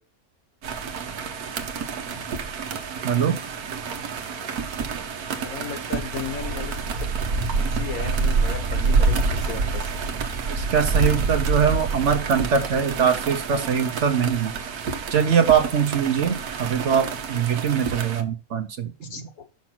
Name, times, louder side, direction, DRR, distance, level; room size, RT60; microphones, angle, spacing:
sound 1, 0.6-18.2, right 4 dB, 90° right, 1.4 m, -27 dB
voice 1, 3.0-3.4 10.5-14.5 15.1-19.3, right 7 dB, 55° right, 8 dB, 1.1 m, -22 dB
voice 2, 5.4-6.7 7.8-9.6 19.1-19.4, left 7 dB, 70° left, 7 dB, 1.7 m, -34 dB
6.0 x 6.0 x 5.9 m, 0.33 s
omnidirectional pair, 1.6 m